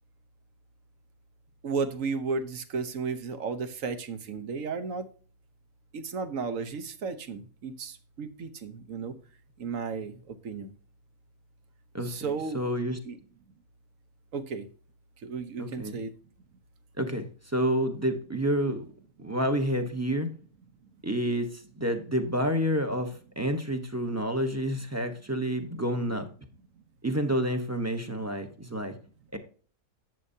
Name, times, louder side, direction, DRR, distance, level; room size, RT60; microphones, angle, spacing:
voice 1, 1.6-5.1 5.9-9.2 9.6-10.7 12.0-12.6 13.0-13.2 14.3-14.7 15.2-16.1, right 5 dB, 60° right, 11 dB, 1.3 m, -34 dB
voice 2, 11.9-13.0 15.6-16.0 17.0-18.8 19.2-20.3 21.0-26.3 27.0-29.0 29.3-29.4, equal, 10° right, 7 dB, 1.0 m, -29 dB
10.5 x 7.9 x 2.7 m, 0.41 s
omnidirectional pair, 1.6 m